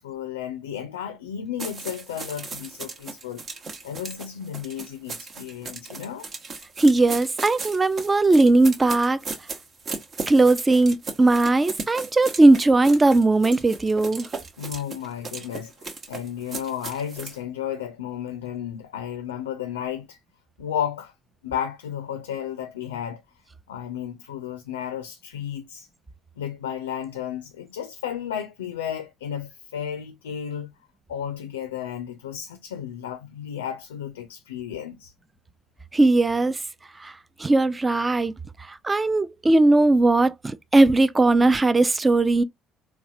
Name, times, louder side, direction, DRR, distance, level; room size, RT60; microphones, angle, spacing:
voice 1, 0.0-3.4 3.8-6.3 14.6-20.2 20.6-21.1 21.4-23.2 23.7-25.9 26.4-30.7 31.1-35.1, left 9 dB, 80° left, 0.4 m, -33 dB
sound 1, 1.6-17.4, right 4 dB, 45° right, 0.9 m, -37 dB
voice 2, 6.8-9.2 10.3-14.3 35.9-36.6 37.0-37.1 37.4-38.3 38.7-42.4, right 2 dB, 25° right, 0.4 m, -18 dB
4.0 x 2.3 x 2.4 m
hypercardioid pair, 50°, 0 cm